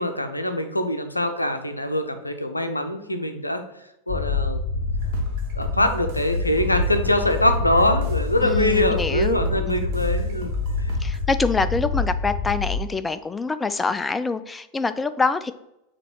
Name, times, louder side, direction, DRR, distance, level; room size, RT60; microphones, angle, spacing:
voice 1, 0.0-3.6 4.1-4.6 5.6-10.5 10.8-11.0, left 1 dB, 85° left, 0.6 m, -23 dB
sound 1, 4.1-12.8, left 3 dB, 35° left, 1.3 m, -26 dB
sound 2, 5.0-11.2, right 1 dB, 45° right, 1.3 m, -36 dB
voice 2, 8.4-9.8 11.0-15.5, left 4 dB, 10° left, 0.3 m, -25 dB
6.8 x 3.0 x 4.6 m
figure-of-eight pair, 90°, 0 cm